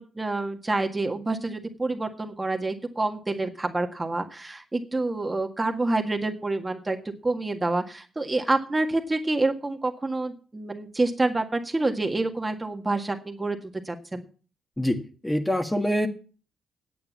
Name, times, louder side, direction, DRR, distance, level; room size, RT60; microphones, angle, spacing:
voice 1, 0.0-7.0 7.2-13.6 13.8-14.2, right 2 dB, 25° right, 4 dB, 1.8 m, -27 dB
voice 2, 14.8-16.1, equal, 10° left, 5 dB, 2.0 m, -25 dB
9.4 x 8.3 x 7.3 m, 0.39 s
supercardioid pair, 50°, 0 cm